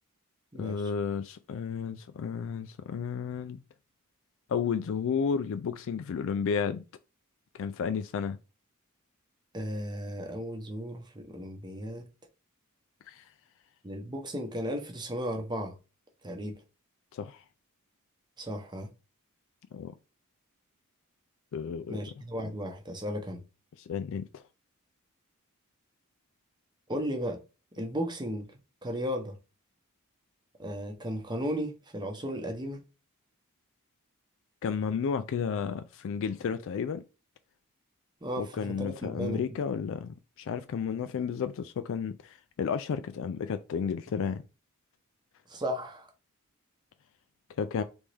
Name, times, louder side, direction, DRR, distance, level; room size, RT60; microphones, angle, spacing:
voice 1, 0.6-3.6 4.5-6.8 7.5-8.4 13.1-13.3 17.1-17.4 19.7-19.9 21.5-22.0 23.8-24.4 34.6-37.0 38.4-44.4 47.6-47.8, left 6 dB, 60° left, 0.3 m, -32 dB
voice 2, 9.5-12.1 13.8-15.7 16.2-16.5 18.4-18.9 21.9-23.4 26.9-27.4 27.8-28.5 28.8-29.4 30.6-32.8 38.2-39.4 45.5-46.1, equal, 20° right, 0.8 m, -35 dB
4.0 x 3.5 x 3.3 m
head